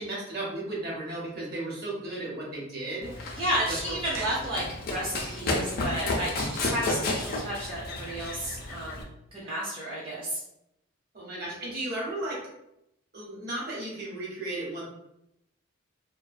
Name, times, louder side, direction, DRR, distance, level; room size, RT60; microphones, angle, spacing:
voice 1, 0.0-3.8 11.1-12.4 13.1-14.9, right 2 dB, 50° right, -4 dB, 0.9 m, -35 dB
Run, 3.0-9.0, left 2 dB, 50° left, 0.4 m, -32 dB
voice 2, 3.3-4.6 4.9-9.0 9.3-10.4, right 1 dB, 25° right, -7 dB, 0.5 m, -32 dB
2.4 x 2.1 x 2.5 m, 0.83 s
head